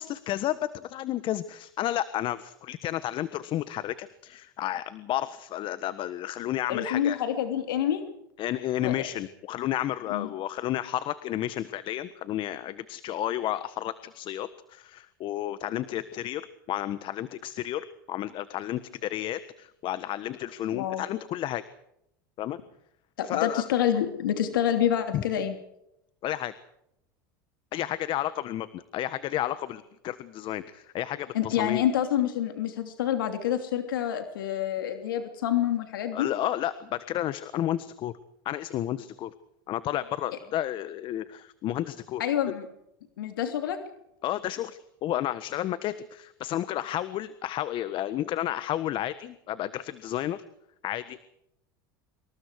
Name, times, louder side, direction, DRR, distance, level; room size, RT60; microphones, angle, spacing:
voice 1, 0.0-7.2 8.4-21.6 22.4-22.6 23.2-23.7 25.1-25.2 26.2-26.5 27.7-31.8 36.1-38.1 38.4-39.3 39.7-42.2 44.2-50.4 50.8-51.3, left 13 dB, 50° left, 14 dB, 1.4 m, -32 dB
voice 2, 6.7-8.0 8.8-9.0 10.1-10.3 20.7-21.0 23.2-25.5 31.3-36.3 42.2-42.7 43.2-43.8, left 10 dB, 85° left, 7 dB, 3.0 m, -27 dB
26.5 x 23.5 x 4.9 m, 0.80 s
hypercardioid pair, 95°, 11 cm